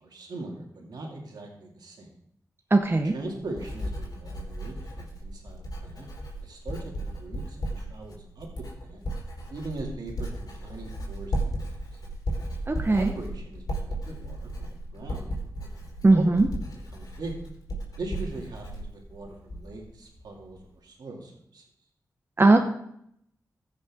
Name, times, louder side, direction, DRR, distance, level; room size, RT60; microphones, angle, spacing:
voice 1, 0.0-2.1 3.1-6.1 6.4-8.5 8.8-9.0 9.5-12.0 12.7-16.4 16.9-17.3 18.0-21.6, right 2 dB, 80° right, 0 dB, 2.3 m, -41 dB
voice 2, 2.7-3.1 12.7-13.1 16.0-16.5 22.4-22.6, right 2 dB, 35° right, 5 dB, 0.9 m, -19 dB
Writing, 2.8-19.9 20.2-20.6, right 1 dB, 65° left, 3.6 m, -35 dB
15.0 x 6.5 x 3.6 m, 0.72 s
cardioid pair, 45°, 7 cm